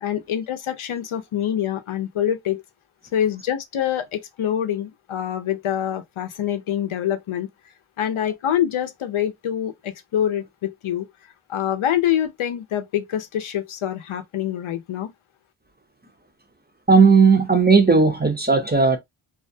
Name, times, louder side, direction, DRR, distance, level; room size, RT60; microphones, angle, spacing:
voice 1, 0.0-2.6 3.1-7.5 8.0-11.1 11.5-15.1, left 10 dB, 75° left, 0.6 m, -25 dB
voice 2, 16.9-19.0, right 4 dB, 20° right, 0.5 m, -15 dB
2.4 x 2.2 x 2.5 m
wide cardioid pair, 90°, 49 cm